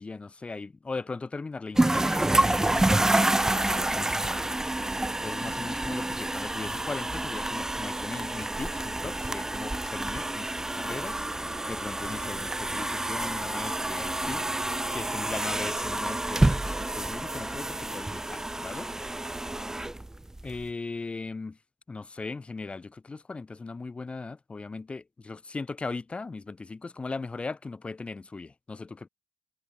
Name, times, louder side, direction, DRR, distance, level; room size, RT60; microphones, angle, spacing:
voice 1, 0.0-4.5 5.2-11.2 11.7-14.4 14.9-18.9 20.4-21.6 21.9-29.1, left 3 dB, 30° left, 6.4 m, -38 dB
sound 1, 1.8-20.6, right 1 dB, 15° right, 2.1 m, -28 dB
hypercardioid pair, 50°, 4 cm